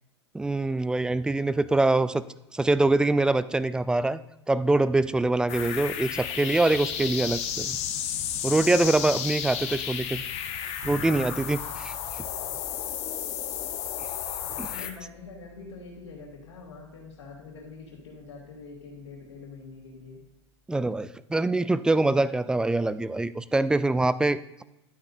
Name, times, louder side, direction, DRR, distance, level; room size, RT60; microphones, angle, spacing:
voice 1, 0.3-2.2 2.5-4.2 4.5-7.8 8.4-10.2 10.8-12.3 14.6-14.7 20.7-24.6, right 2 dB, 5° right, 16 dB, 0.3 m, -24 dB
sound 1, 5.5-14.9, left 9 dB, 45° left, 1.1 m, -33 dB
Bass guitar, 10.8-20.5, right 4 dB, 45° right, 1.9 m, -51 dB
voice 2, 14.5-20.2, left 4 dB, 75° left, -6 dB, 2.7 m, -44 dB
12.0 x 8.8 x 2.7 m, 0.90 s
hypercardioid pair, 105°, 15 cm